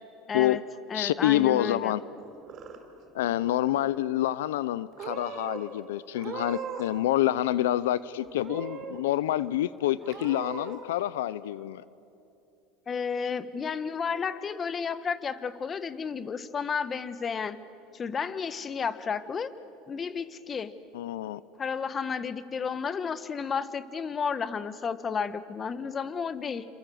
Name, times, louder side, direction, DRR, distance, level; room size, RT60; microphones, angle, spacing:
voice 1, 0.3-0.6 0.9-2.0 12.9-17.6 17.9-19.5 19.9-20.7 21.6-26.7, left 6 dB, 30° left, 13 dB, 1.3 m, -32 dB
voice 2, 0.9-2.0 3.1-11.8 20.9-21.4, left 13 dB, 90° left, 18 dB, 0.6 m, -27 dB
Purr / Meow, 2.2-3.0 3.3-3.9 4.6-4.7 5.0-5.6 6.1-7.0 7.3-8.0 8.4-9.0 9.4-9.5 10.0-10.7, right 7 dB, 45° right, 5.2 m, -40 dB
27.5 x 27.5 x 7.8 m, 2.8 s
supercardioid pair, 100°, 0 cm